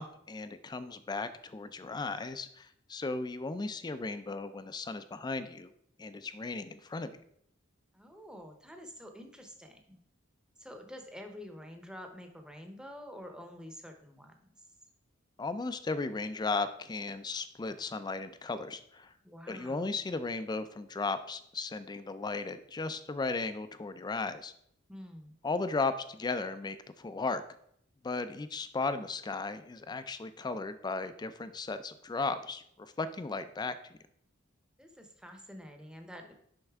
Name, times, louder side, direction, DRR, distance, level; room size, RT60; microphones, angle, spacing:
voice 1, 0.0-5.7 6.0-7.1 15.4-19.1 19.5-24.5 25.4-27.4 28.0-33.7, left 3 dB, 20° left, 12 dB, 0.4 m, -36 dB
voice 2, 7.9-10.0 10.6-14.5 19.2-19.9 24.9-25.4 34.8-36.3, equal, 5° right, 4 dB, 0.8 m, -48 dB
6.6 x 5.3 x 3.5 m, 0.68 s
head